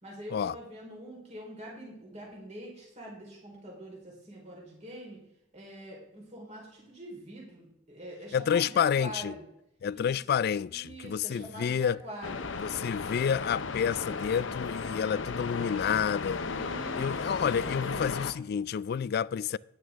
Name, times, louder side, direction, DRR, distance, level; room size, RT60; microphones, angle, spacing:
voice 1, 0.0-5.2 5.5-9.4 9.9-10.1 10.7-12.5 16.4-18.2, right 1 dB, 35° right, 4.0 m, -45 dB
voice 2, 8.3-9.3 9.8-12.0 12.6-16.4 17.0-19.6, left 7 dB, 55° left, 0.3 m, -29 dB
sound 1, 12.2-18.3, left 4 dB, 70° left, 0.7 m, -35 dB
13.0 x 10.5 x 3.5 m
head